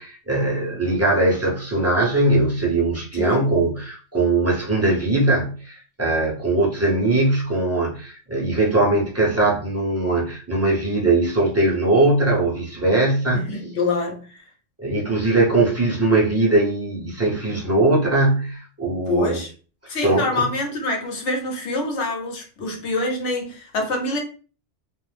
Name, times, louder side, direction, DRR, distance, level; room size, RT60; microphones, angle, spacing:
voice 1, 0.0-13.5 14.8-19.4 20.0-20.4, right 2 dB, 15° right, 0.7 m, -20 dB
voice 2, 3.1-3.4 13.3-14.4 19.1-19.5 19.9-24.2, left 2 dB, 70° left, 1.1 m, -25 dB
2.5 x 2.0 x 3.2 m
omnidirectional pair, 1.3 m